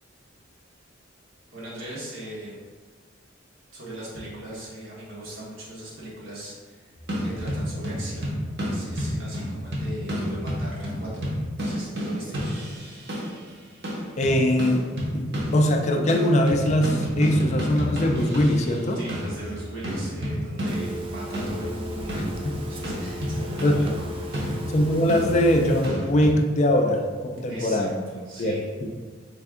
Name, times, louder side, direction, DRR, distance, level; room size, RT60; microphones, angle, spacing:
voice 1, 1.5-2.6 3.7-6.9 7.2-8.4 8.6-12.4 18.9-22.3 22.7-24.7 27.5-28.6, right 1 dB, 85° right, -6 dB, 1.5 m, -39 dB
sound 1, 7.0-13.5 13.8-15.8 16.1-26.4, equal, 55° right, 0.9 m, -30 dB
voice 2, 14.2-14.9 15.1-19.0 22.1-22.6 23.6-23.8 24.7-27.9 28.4-28.6 28.8-29.0, left 1 dB, 35° left, 3 dB, 0.4 m, -22 dB
Telephone, 20.7-25.9, equal, 25° right, 0.4 m, -37 dB
3.4 x 3.3 x 3.6 m, 1.5 s
head